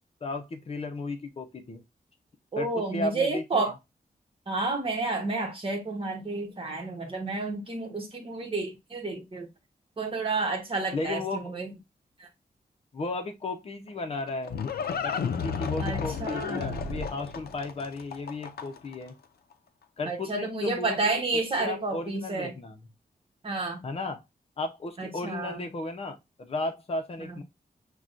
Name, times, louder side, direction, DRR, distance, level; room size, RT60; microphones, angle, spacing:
voice 1, 0.2-1.8 2.6-3.6 10.9-11.5 12.9-14.6 15.0-19.1 20.0-21.2 21.6-22.7 23.8-24.2 24.6-27.4, left 2 dB, 40° left, 0.7 m, -34 dB
voice 2, 2.5-3.7 4.5-9.5 10.0-11.7 12.2-12.3 15.8-16.8 20.1-22.5 23.4-23.8 25.0-25.6 27.3-27.4, right 3 dB, 35° right, 1.1 m, -30 dB
Livestock farm animals working animals, 13.9-18.9, left 6 dB, 85° left, 0.5 m, -32 dB
5.9 x 2.3 x 2.5 m
wide cardioid pair, 150°, 16 cm